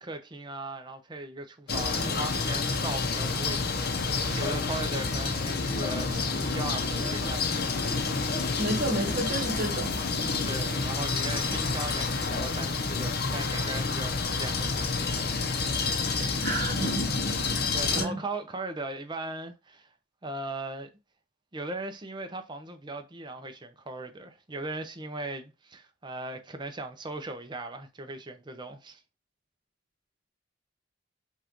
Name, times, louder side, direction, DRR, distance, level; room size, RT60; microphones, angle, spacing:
voice 1, 0.0-7.7 10.4-15.3 17.7-19.9 20.2-20.9 21.5-29.0, right 2 dB, 25° right, 0.7 m, -38 dB
sound 1, 1.7-18.1, left 4 dB, 55° left, 0.8 m, -29 dB
voice 2, 8.6-10.0 16.4-17.2 17.9-18.2, right 1 dB, 50° right, 1.4 m, -30 dB
5.4 x 2.5 x 3.0 m
head